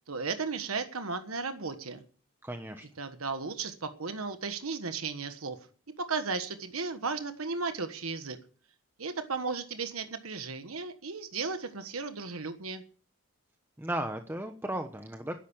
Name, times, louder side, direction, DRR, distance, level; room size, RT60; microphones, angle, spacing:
voice 1, 0.1-2.0 3.0-5.6 6.0-8.4 9.0-12.8, right 4 dB, 90° right, 8 dB, 1.3 m, -35 dB
voice 2, 2.4-2.9 13.8-15.4, right 1 dB, 10° right, 6 dB, 1.0 m, -35 dB
12.5 x 11.0 x 7.3 m, 0.43 s
head